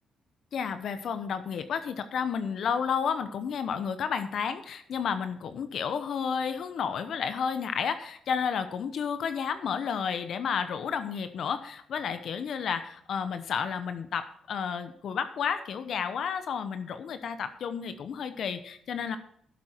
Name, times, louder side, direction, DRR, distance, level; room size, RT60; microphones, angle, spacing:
voice 1, 0.5-19.2, left 7 dB, 65° left, 10 dB, 0.8 m, -31 dB
11.5 x 7.6 x 4.4 m, 0.64 s
cardioid pair, 90°, 0 cm